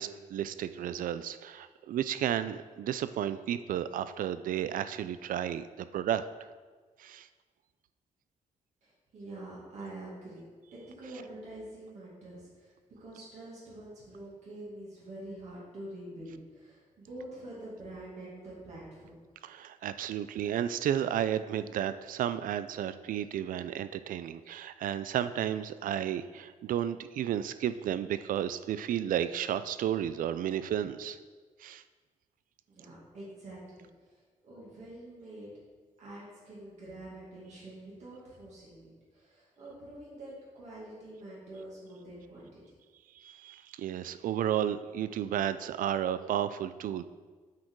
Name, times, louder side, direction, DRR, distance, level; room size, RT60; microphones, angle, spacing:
voice 1, 0.0-6.2 7.0-7.3 19.4-31.2 31.6-31.8 43.2-47.0, right 10 dB, 85° right, 13 dB, 0.4 m, -32 dB
voice 2, 8.8-10.4 10.7-12.7 13.0-19.2 32.7-35.5 36.0-42.6, right 1 dB, 55° right, -7 dB, 2.4 m, -46 dB
8.3 x 6.5 x 4.7 m, 1.4 s
wide cardioid pair, 180°, 14 cm